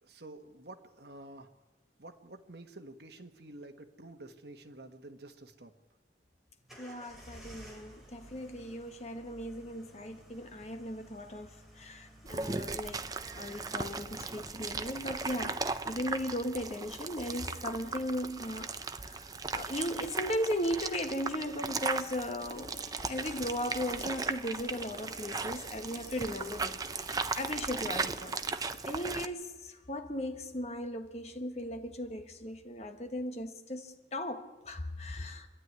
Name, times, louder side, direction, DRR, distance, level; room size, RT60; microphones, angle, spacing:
voice 1, 0.0-1.5 2.0-5.7, right 2 dB, 65° right, 1.5 m, -49 dB
sound 1, 6.7-13.7, right 1 dB, ahead, 3.2 m, -54 dB
voice 2, 6.8-13.0 13.3-15.6 15.8-18.7 19.0-22.8 23.1-35.5, equal, 35° left, 1.3 m, -37 dB
sound 2, 12.3-29.3, right 4 dB, 20° right, 0.6 m, -37 dB
sound 3, 22.4-30.5 32.6-32.7, left 3 dB, 70° left, 1.4 m, -56 dB
26.5 x 11.0 x 9.5 m
head